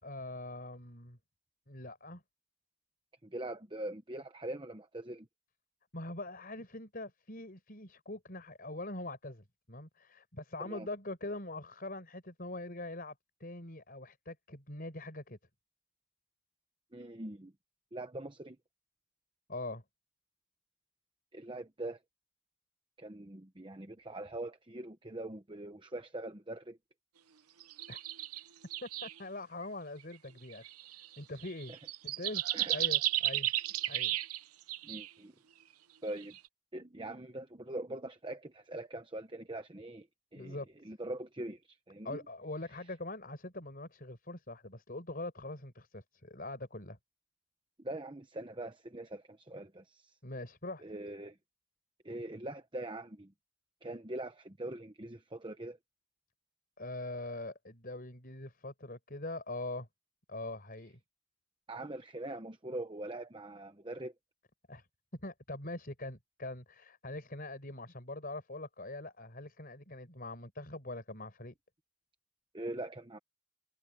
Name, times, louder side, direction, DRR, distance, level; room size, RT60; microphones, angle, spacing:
voice 1, 0.0-1.2 1.7-2.2 5.9-13.1 13.4-15.4 19.5-19.8 27.9-28.0 28.8-30.7 31.2-31.7 32.0-33.5 33.9-34.1 40.3-40.7 42.0-47.0 50.2-50.8 56.8-59.9 60.3-61.0 64.7-64.9 65.1-71.5, left 2 dB, 40° left, 4.9 m, -43 dB
voice 2, 3.2-5.3 10.6-10.9 16.9-17.5 17.9-18.6 21.3-22.0 23.0-26.8 32.5-32.7 34.8-35.3 36.0-36.4 36.7-40.1 40.3-40.6 40.8-42.2 47.8-50.2 50.8-51.4 52.0-53.3 53.8-55.8 61.7-64.1 72.5-73.2, right 1 dB, 20° right, 0.9 m, -42 dB
sound 1, 27.6-28.4 28.7-29.2 30.0-30.2 30.5-34.4 34.7-35.1 36.2-36.5, right 14 dB, 85° right, 0.8 m, -34 dB
head